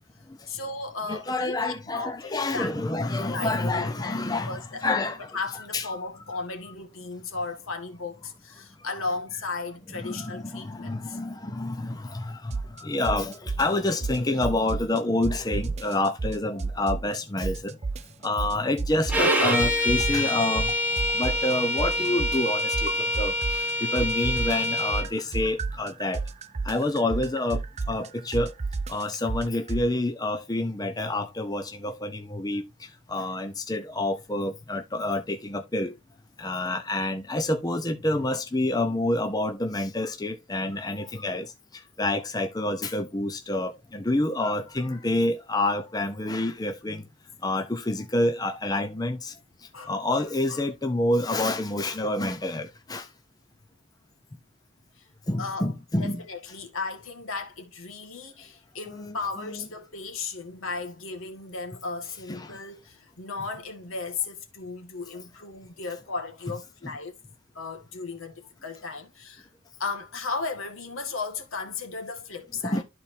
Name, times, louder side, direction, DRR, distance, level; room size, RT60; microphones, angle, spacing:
voice 1, 0.5-2.7 3.3-4.2 4.5-5.0 5.3-11.2 49.7-50.6 55.0-55.1 55.4-55.7 56.0-67.1 67.5-69.5 69.8-72.8, left 4 dB, 75° left, 1.6 m, -35 dB
voice 2, 1.1-5.9 9.9-17.8 18.2-20.7 21.1-26.2 26.6-28.5 28.9-35.9 36.4-41.5 42.0-47.0 47.4-49.3 49.9-53.1 55.3-56.2 58.9-59.7 62.3-62.6 72.6-72.8, left 2 dB, 20° left, 0.6 m, -28 dB
sound 1, 12.5-12.8 13.1-15.0 15.2-17.2 17.4-19.3 19.6-23.7 24.0-29.9, right 3 dB, 30° right, 0.4 m, -31 dB
Bowed string instrument, 19.1-25.1, left 1 dB, 5° right, 1.2 m, -26 dB
12.5 x 4.3 x 2.6 m
head